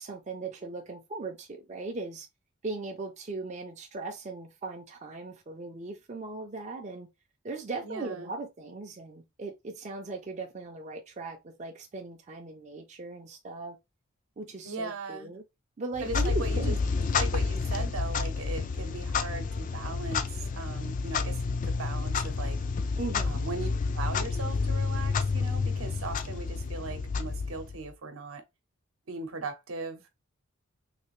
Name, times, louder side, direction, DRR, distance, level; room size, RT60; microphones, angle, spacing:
voice 1, 0.0-2.3 2.6-7.1 7.4-13.8 14.4-15.4 15.8-16.8 23.0-23.4, right 3 dB, 35° right, 0.4 m, -38 dB
voice 2, 7.8-8.3 14.6-15.3 16.0-16.7 17.2-22.6 23.2-23.7 23.9-28.4 29.1-30.0, right 3 dB, 80° right, 0.8 m, -38 dB
Clock, 15.9-27.9, left 4 dB, 40° left, 0.3 m, -30 dB
3.3 x 2.4 x 3.1 m
head